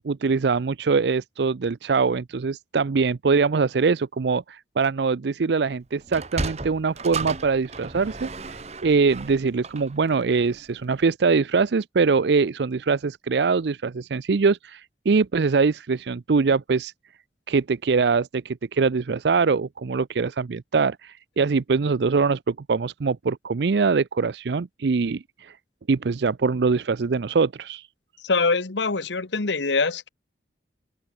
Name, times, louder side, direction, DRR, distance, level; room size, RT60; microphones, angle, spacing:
voice 1, 0.0-16.9 17.5-25.6 25.9-27.9, right 4 dB, 70° right, 0.5 m, -23 dB
Sliding door, 6.0-10.6, right 3 dB, 35° right, 1.1 m, -34 dB
voice 2, 28.2-30.1, left 4 dB, 85° left, 1.2 m, -24 dB
open air
head